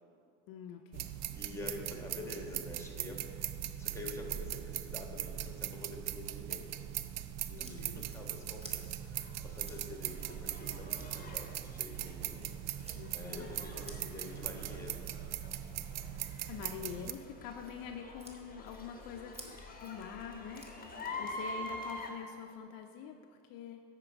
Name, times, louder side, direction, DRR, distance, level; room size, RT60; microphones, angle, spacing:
voice 1, 0.5-1.1 7.5-8.1 12.9-13.5 16.5-23.8, left 8 dB, 60° left, 5 dB, 0.6 m, -45 dB
sound 1, 0.9-17.1, right 12 dB, 45° right, 0.4 m, -40 dB
voice 2, 1.1-3.3 3.8-6.7 7.6-15.0 20.8-21.4, left 2 dB, 5° left, 1 dB, 1.5 m, -47 dB
sound 2, 7.5-20.8, equal, 15° right, 1.2 m, -56 dB
sound 3, 8.6-22.1, left 2 dB, 20° left, 1.1 m, -47 dB
8.9 x 4.5 x 5.1 m, 2.4 s
hypercardioid pair, 80°, 39 cm